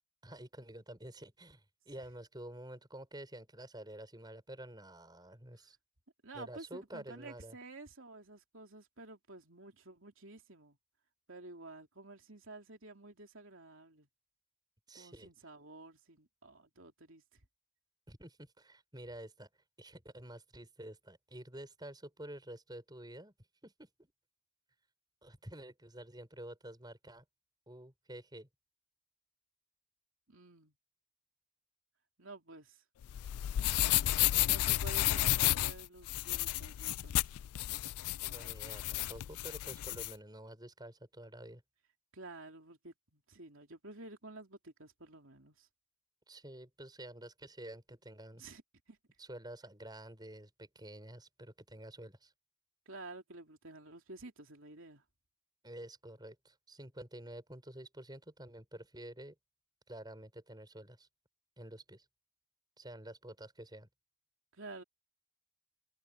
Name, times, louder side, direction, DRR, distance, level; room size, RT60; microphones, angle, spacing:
voice 1, 0.2-5.8 6.3-7.6 14.9-15.3 18.1-19.5 19.8-23.3 23.6-24.1 25.2-27.2 27.7-28.5 38.3-41.6 46.3-48.4 49.2-52.3 55.6-59.4 59.9-61.1 61.6-62.1 62.8-63.9, right 1 dB, 20° right, 6.8 m, -49 dB
voice 2, 6.2-10.8 11.3-14.1 15.0-17.2 30.3-30.7 32.2-32.8 34.3-37.2 42.1-45.7 48.3-48.6 48.9-49.0 52.9-55.0 64.5-64.8, right 2 dB, 60° right, 3.3 m, -51 dB
sound 1, 33.0-40.1, left 15 dB, 90° left, 0.3 m, -32 dB
head